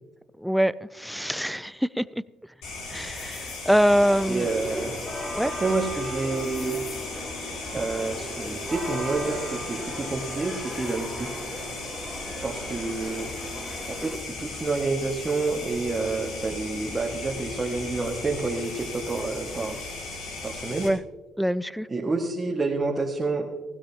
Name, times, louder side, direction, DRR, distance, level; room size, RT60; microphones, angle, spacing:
voice 1, 0.4-2.1 2.9-4.5 5.3-5.5 20.8-21.0 21.4-21.9, equal, ahead, 0.4 m, -24 dB
sound 1, 2.6-20.9, left 3 dB, 75° left, 4.5 m, -37 dB
sound 2, 3.9-14.2, equal, 15° left, 2.9 m, -37 dB
voice 2, 4.3-4.9 5.4-6.8 7.7-11.3 12.4-13.3 13.9-19.8 20.4-20.9 21.9-23.6, right 3 dB, 25° right, 1.8 m, -29 dB
Wind instrument woodwind instrument, 5.5-14.2, right 5 dB, 85° right, 2.3 m, -47 dB
16.5 x 15.5 x 2.9 m
supercardioid pair, 75°, 0 cm